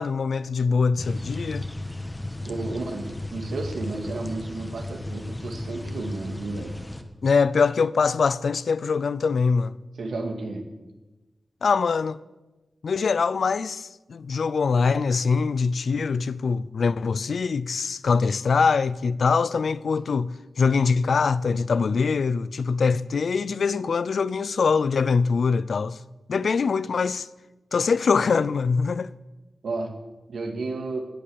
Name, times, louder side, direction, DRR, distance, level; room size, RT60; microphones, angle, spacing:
voice 1, 0.0-1.7 7.2-9.7 11.6-12.2 12.8-26.0 26.3-27.3 27.7-29.1, left 5 dB, 75° left, 0.5 m, -23 dB
sound 1, 1.0-7.0, left 1 dB, 20° left, 1.6 m, -35 dB
voice 2, 2.5-6.8 10.0-10.7 29.6-29.9 30.3-31.0, right 3 dB, 90° right, 2.1 m, -32 dB
17.0 x 8.6 x 7.1 m
cardioid pair, 50°, 0 cm